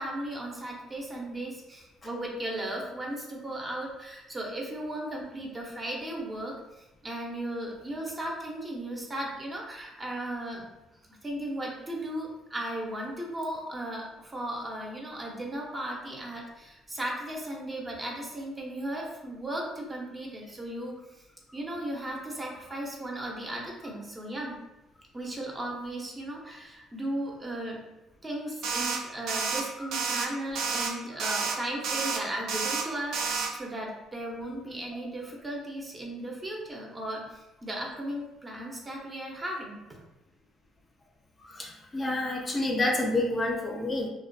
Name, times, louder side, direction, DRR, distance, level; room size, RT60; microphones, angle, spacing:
voice 1, 0.0-10.7 11.2-20.9 21.5-24.6 25.1-27.8 28.2-39.8, right 1 dB, 25° right, -1 dB, 0.6 m, -36 dB
sound 1, 28.6-29.0 29.3-29.6 29.9-30.3 30.5-30.9 31.2-31.6 31.8-32.2 32.5-32.8 33.1-33.5, right 5 dB, 75° right, 0.3 m, -30 dB
voice 2, 41.5-44.1, left 2 dB, 30° left, 0 dB, 0.5 m, -29 dB
2.4 x 2.2 x 2.5 m, 1.0 s
cardioid pair, 85°, 0 cm